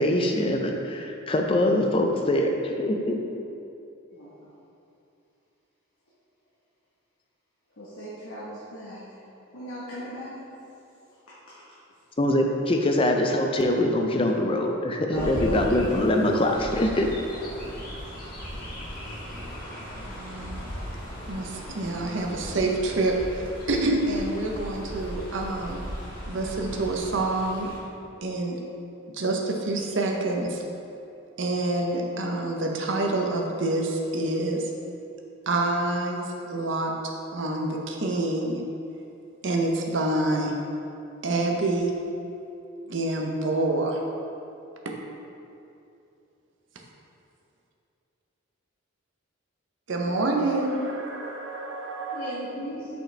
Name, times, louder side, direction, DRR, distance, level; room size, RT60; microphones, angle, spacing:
voice 1, 0.0-3.2 12.2-17.1, left 1 dB, 25° left, 0.4 m, -23 dB
voice 2, 7.8-9.0 9.5-10.4 15.1-15.7 17.4-17.8 19.0-19.2 52.1-52.9, equal, 85° left, 1.2 m, -36 dB
Chirp tweet, 15.1-27.8, equal, 45° left, 1.3 m, -37 dB
voice 3, 19.9-20.6 21.3-25.8 26.3-27.7 28.2-28.6 29.1-30.6 31.4-34.7 35.5-38.6 39.4-40.5 41.2-41.9 42.8-44.0 44.8-44.9 49.9-52.3, right 2 dB, 60° right, 0.7 m, -27 dB
6.4 x 5.2 x 3.3 m
head